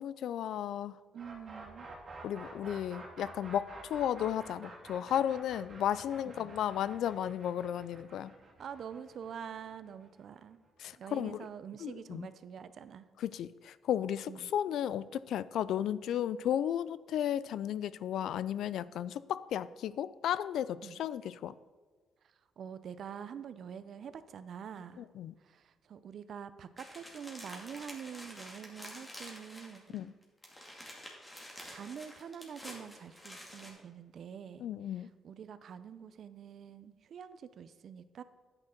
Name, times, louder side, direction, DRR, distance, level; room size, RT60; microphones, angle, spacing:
voice 1, 0.0-1.0 2.2-8.3 10.8-11.5 11.8-12.3 13.2-21.5 25.0-25.3 29.9-30.1 34.6-35.1, left 10 dB, 75° left, 17 dB, 0.3 m, -34 dB
voice 2, 1.1-1.9 6.4-6.6 8.6-10.6 10.9-13.1 14.3-14.5 20.8-21.0 22.2-25.1 25.4-30.2 30.8-31.0 31.7-34.6 34.9-38.2, right 7 dB, 60° right, 13 dB, 0.6 m, -46 dB
sound 1, 1.2-11.0, right 2 dB, 45° right, 2.4 m, -50 dB
sound 2, 26.8-30.0 30.2-33.7, equal, 15° left, 2.3 m, -49 dB
10.5 x 8.9 x 3.8 m, 1.4 s
cardioid pair, 90°, 0 cm